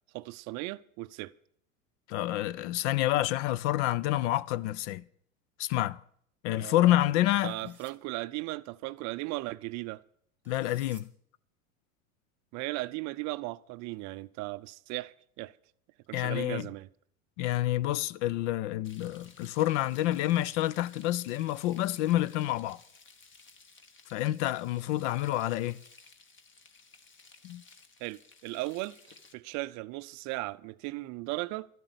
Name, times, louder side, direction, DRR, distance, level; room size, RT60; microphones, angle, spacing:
voice 1, 0.1-1.3 6.6-7.1 7.4-10.0 12.5-15.6 16.1-16.9 28.0-29.0 29.3-31.7, right 21 dB, 40° right, 0.5 m, -37 dB
voice 2, 2.1-5.0 5.6-6.0 6.4-7.7 10.5-11.1 16.1-16.7 17.4-22.8 24.1-25.8 27.4-27.6, left 15 dB, 55° left, 0.6 m, -28 dB
sound 1, 7.3-7.9 10.4-11.0, right 3 dB, 5° right, 2.1 m, -57 dB
Frying (food), 18.8-29.3, left 4 dB, 30° left, 1.3 m, -57 dB
13.0 x 8.6 x 8.0 m
hypercardioid pair, 85°, 42 cm